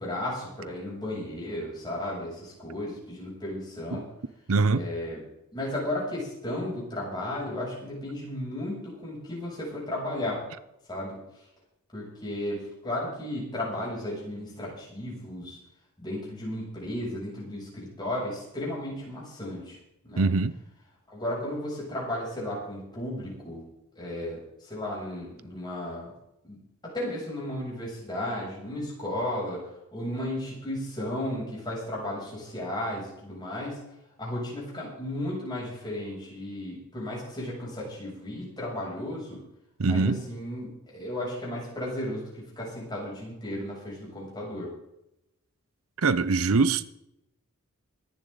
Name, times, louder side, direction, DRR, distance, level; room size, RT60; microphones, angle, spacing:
voice 1, 0.0-4.0 4.7-5.2 5.5-10.4 10.9-11.2 11.9-15.6 16.0-19.8 20.0-20.3 21.1-23.6 24.0-26.1 26.4-26.6 26.8-29.6 29.9-33.9 34.2-39.4 39.9-44.7, left 1 dB, 20° left, 7.7 m, -34 dB
voice 2, 4.5-4.8 20.2-20.5 39.8-40.2 46.0-46.8, right 4 dB, 75° right, 0.7 m, -23 dB
24.0 x 10.5 x 4.0 m
head